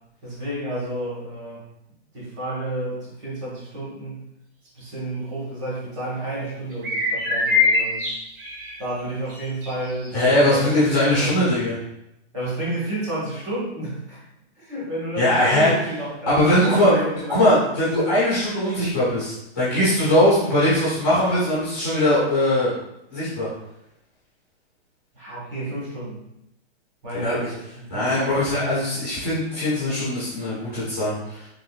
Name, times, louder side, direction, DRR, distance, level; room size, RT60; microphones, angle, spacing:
voice 1, 0.2-1.6 2.1-4.2 4.7-8.1 8.8-11.4 12.3-14.2 14.6-17.6 25.1-26.2 27.0-28.6, right 1 dB, 25° right, -7 dB, 1.1 m, -31 dB
sound 1, 6.7-8.8 9.3-9.7 10.0-10.1 10.9-11.0, left 3 dB, 55° right, 1.1 m, -23 dB
voice 2, 10.1-11.8 15.2-15.7 16.3-17.0 17.3-22.7 23.1-23.5 27.2-27.4 27.9-31.1, left 1 dB, 10° left, -10 dB, 0.3 m, -20 dB
3.6 x 2.9 x 2.3 m, 0.83 s
hypercardioid pair, 180°, 33 cm